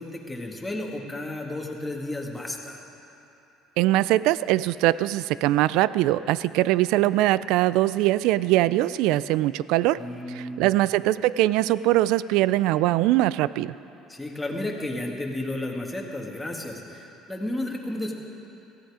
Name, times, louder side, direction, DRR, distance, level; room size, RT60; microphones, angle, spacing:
voice 1, 0.0-2.8 10.0-10.7 14.1-18.1, left 1 dB, 10° left, -1 dB, 2.0 m, -32 dB
voice 2, 3.8-10.0 10.3-13.7, right 16 dB, 80° right, 17 dB, 0.3 m, -22 dB
17.5 x 14.5 x 5.0 m, 2.8 s
cardioid pair, 110°, 0 cm